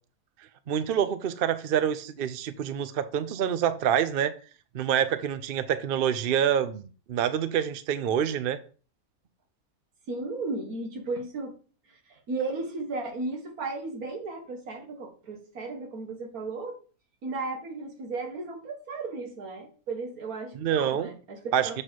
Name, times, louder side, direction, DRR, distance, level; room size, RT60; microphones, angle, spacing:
voice 1, 0.7-4.3 4.7-6.8 7.1-8.6 20.5-21.1 21.5-21.8, right 9 dB, 55° right, 0.6 m, -26 dB
voice 2, 10.1-11.5 12.1-16.8 17.2-21.8, right 3 dB, 80° right, 1.9 m, -35 dB
7.5 x 4.2 x 4.7 m
omnidirectional pair, 1.5 m